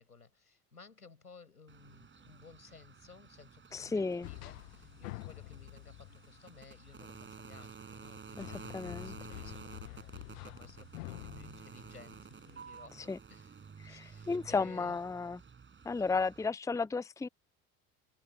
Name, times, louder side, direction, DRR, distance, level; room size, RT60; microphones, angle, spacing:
voice 1, 0.0-15.0, left 4 dB, 90° left, 7.1 m, -57 dB
sound 1, 1.7-16.5, right 6 dB, 25° right, 6.9 m, -52 dB
voice 2, 3.7-4.3 8.4-8.5 8.7-9.1 13.1-13.2 13.8-15.4 15.8-17.3, left 4 dB, 5° left, 0.8 m, -33 dB
sound 2, 4.2-12.8, left 23 dB, 60° left, 1.3 m, -49 dB
figure-of-eight pair, 65°, 44 cm